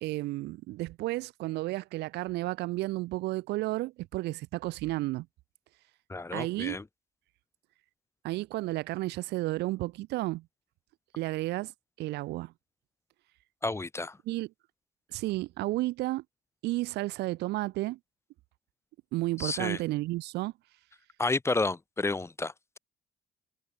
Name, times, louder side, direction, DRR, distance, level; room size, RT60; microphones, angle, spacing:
voice 1, 0.0-5.3 6.3-6.8 8.2-10.5 11.2-11.7 12.0-12.5 14.3-14.5 15.1-16.2 16.6-18.0 19.1-20.5, right 19 dB, 80° right, 0.9 m, -32 dB
voice 2, 6.1-6.8 13.6-14.2 19.4-19.8 21.2-22.8, left 3 dB, 15° left, 1.6 m, -31 dB
cardioid pair, 110°, 17 cm